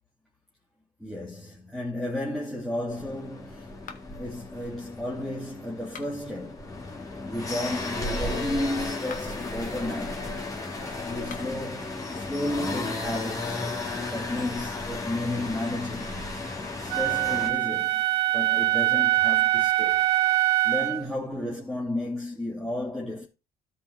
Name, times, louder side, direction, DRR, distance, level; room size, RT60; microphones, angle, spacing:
voice 1, 1.0-3.7 4.2-6.7 7.2-10.3 10.9-13.8 14.1-16.3 16.8-18.1 18.3-20.1 20.6-23.3, left 1 dB, ahead, 2.6 m, -33 dB
sound 1, 2.9-17.5, left 2 dB, 20° left, 2.8 m, -34 dB
sound 2, 3.8-4.3 5.8-6.4 8.9-9.5 11.2-11.7, left 6 dB, 50° left, 1.6 m, -46 dB
Wind instrument woodwind instrument, 16.9-21.1, right 16 dB, 85° right, 0.5 m, -23 dB
13.0 x 5.2 x 3.8 m
cardioid pair, 110°, 17 cm